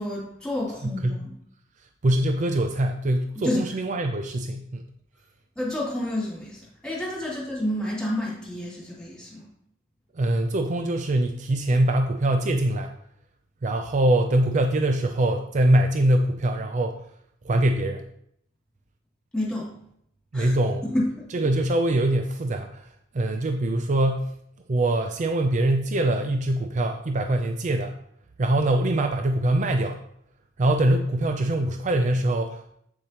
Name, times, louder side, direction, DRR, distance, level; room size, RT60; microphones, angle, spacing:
voice 1, 0.0-1.3 3.4-3.6 5.6-9.4 19.3-19.7 20.3-20.5 20.9-21.3, left 1 dB, 5° left, -6 dB, 2.9 m, -29 dB
voice 2, 0.8-1.2 2.0-4.8 10.1-12.9 13.6-17.0 17.4-18.1 20.3-20.8 21.3-22.9 23.1-24.3 24.7-27.9 28.4-30.0 30.6-32.7, right 1 dB, 40° right, 5 dB, 0.4 m, -23 dB
8.1 x 7.5 x 2.9 m, 0.72 s
head